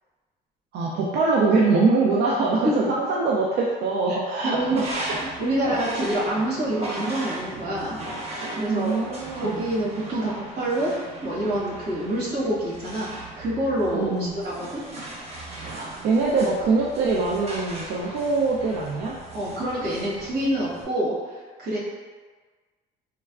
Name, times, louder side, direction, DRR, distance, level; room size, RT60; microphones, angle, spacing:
voice 1, 0.7-5.3 5.6-5.8 8.7-9.6 13.9-14.4 15.7-19.2, right 3 dB, 70° right, -4 dB, 0.4 m, -23 dB
voice 2, 4.4-8.0 8.5-9.1 9.4-10.9 11.2-14.8 19.3-21.8, right 1 dB, 85° right, -7 dB, 1.2 m, -27 dB
sound 1, 4.6-20.8, right 1 dB, 40° right, 0.7 m, -38 dB
3.2 x 2.1 x 2.3 m, 1.4 s
cardioid pair, 110°, 17 cm